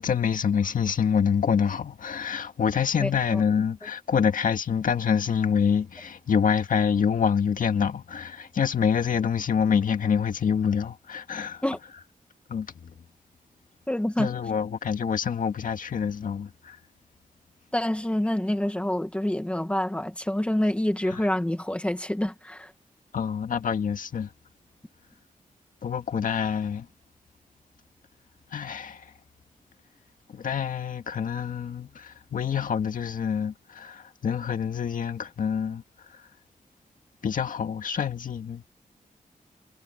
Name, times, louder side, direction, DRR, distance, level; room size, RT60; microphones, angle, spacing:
voice 1, 0.0-11.6 12.5-12.9 14.2-16.8 21.1-21.3 23.1-24.3 25.8-26.9 28.5-29.1 30.3-36.3 37.2-38.7, left 7 dB, 75° left, 1.9 m, -26 dB
voice 2, 13.9-14.3 17.7-22.7, left 1 dB, 10° left, 1.9 m, -27 dB
wide cardioid pair, 150°, 14 cm